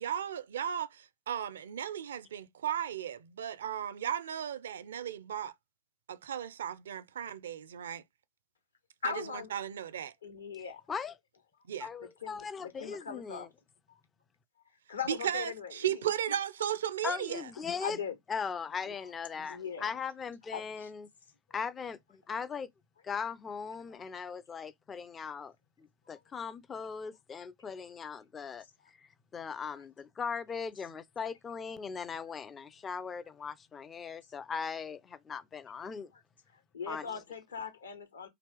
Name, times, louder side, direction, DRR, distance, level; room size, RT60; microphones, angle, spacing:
voice 1, 0.0-5.5 6.1-8.0 9.0-9.1 9.5-10.1 11.7-11.9 15.1-17.5, right 9 dB, 65° right, 0.4 m, -35 dB
voice 2, 9.0-9.5 10.2-10.8 12.2-13.5 14.9-16.0 17.8-18.2 18.9-19.0 19.5-19.9 20.5-20.9 26.1-26.2 36.1-36.2 36.7-38.3, left 7 dB, 75° left, 0.9 m, -40 dB
voice 3, 11.8-13.5 17.0-18.0 18.3-21.1 21.5-22.7 23.0-25.5 25.8-28.6 29.0-36.1 36.9-37.1, left 6 dB, 20° left, 0.3 m, -39 dB
2.9 x 2.9 x 3.3 m
figure-of-eight pair, 90°, 0 cm